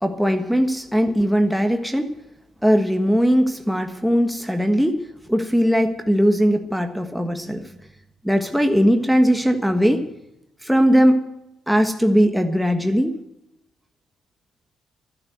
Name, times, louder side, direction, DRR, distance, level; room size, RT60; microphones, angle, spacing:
voice 1, 0.0-2.1 2.6-7.7 8.2-10.0 10.6-11.3 11.7-13.2, equal, ahead, 5 dB, 1.4 m, -19 dB
12.0 x 10.5 x 7.7 m, 0.86 s
cardioid pair, 90°, 0 cm